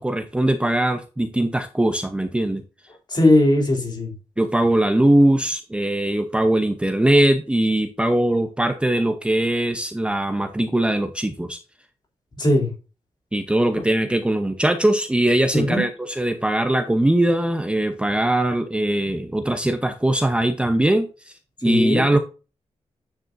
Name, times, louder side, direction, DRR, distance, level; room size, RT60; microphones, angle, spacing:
voice 1, 0.0-2.6 4.4-11.6 13.3-21.3 21.6-22.2, right 1 dB, 10° right, 5 dB, 0.7 m, -21 dB
voice 2, 3.1-4.1 12.4-12.7 15.5-15.8 21.6-22.0, left 1 dB, 35° left, 1 dB, 3.9 m, -18 dB
9.2 x 7.4 x 2.6 m, 0.32 s
wide cardioid pair, 145°, 12 cm